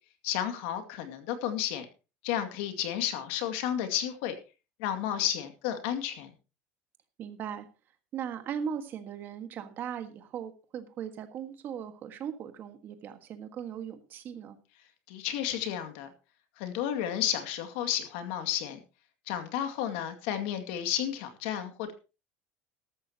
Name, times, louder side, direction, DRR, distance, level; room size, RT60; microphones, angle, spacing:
voice 1, 0.2-1.9 2.2-4.3 4.8-6.3 15.1-16.1 16.6-18.8 19.3-21.9, left 10 dB, 70° left, 7 dB, 2.2 m, -32 dB
voice 2, 7.2-7.7 8.1-14.6, right 8 dB, 35° right, 8 dB, 1.5 m, -38 dB
14.0 x 13.5 x 2.9 m, 0.31 s
cardioid pair, 170°, 6 cm